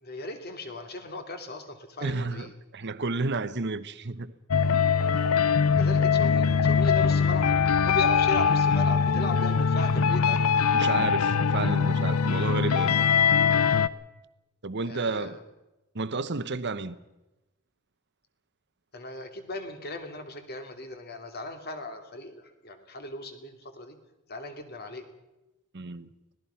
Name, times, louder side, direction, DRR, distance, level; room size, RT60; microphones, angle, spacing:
voice 1, 0.0-2.5 5.8-7.5 7.8-10.5 14.8-15.4 18.9-24.0 24.3-25.0, left 2 dB, 45° left, 2.6 m, -37 dB
voice 2, 2.0-4.3 10.7-13.0 14.6-15.4 15.9-17.0 25.7-26.1, right 3 dB, 50° right, 0.9 m, -31 dB
sound 1, 4.5-13.9, left 6 dB, 75° left, 0.7 m, -22 dB
25.0 x 19.0 x 5.7 m
head